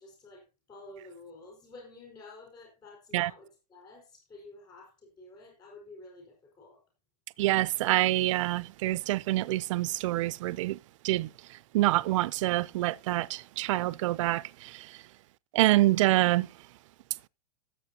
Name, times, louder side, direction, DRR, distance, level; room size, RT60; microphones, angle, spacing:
voice 1, 0.0-6.8, left 2 dB, 20° left, 4.7 m, -50 dB
voice 2, 7.4-10.8 11.0-11.3 11.7-14.9 15.5-16.5, right 17 dB, 50° right, 0.4 m, -26 dB
17.0 x 7.6 x 2.8 m
supercardioid pair, 155°, 20 cm